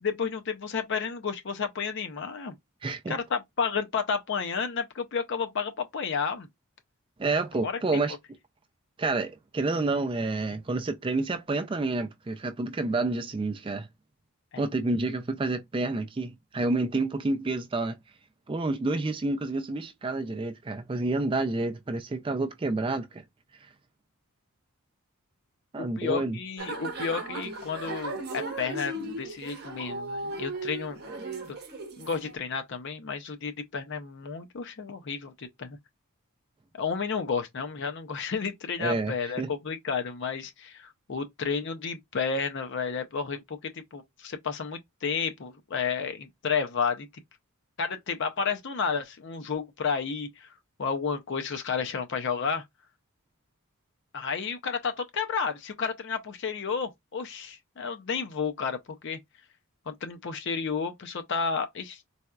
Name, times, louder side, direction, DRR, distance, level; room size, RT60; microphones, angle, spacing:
voice 1, 0.0-2.6 3.1-6.5 7.6-7.8 14.5-14.6 25.8-31.0 32.0-35.8 36.7-47.1 47.8-50.5 50.8-52.6 54.1-59.2 59.9-62.0, left 5 dB, 55° left, 0.5 m, -31 dB
voice 2, 2.8-3.1 7.2-8.1 9.0-13.9 14.6-18.0 18.5-23.2 25.7-26.4 38.8-39.5, right 3 dB, 20° right, 0.3 m, -29 dB
sound 1, 26.6-32.3, right 2 dB, 45° right, 0.9 m, -36 dB
4.1 x 2.3 x 2.3 m
head